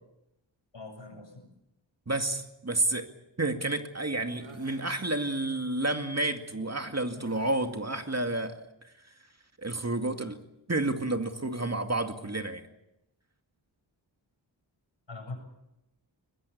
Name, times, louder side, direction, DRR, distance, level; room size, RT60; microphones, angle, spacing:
voice 1, 0.7-1.5 15.1-15.4, left 3 dB, 70° left, 4 dB, 7.5 m, -42 dB
voice 2, 2.1-3.1 3.4-8.7 9.6-10.4 10.7-12.7, right 2 dB, 35° right, 6 dB, 2.3 m, -30 dB
sound 1, 4.4-4.9 7.2-7.8, right 3 dB, 80° right, 2.9 m, -50 dB
22.0 x 21.5 x 8.5 m, 0.88 s
wide cardioid pair, 60°, 46 cm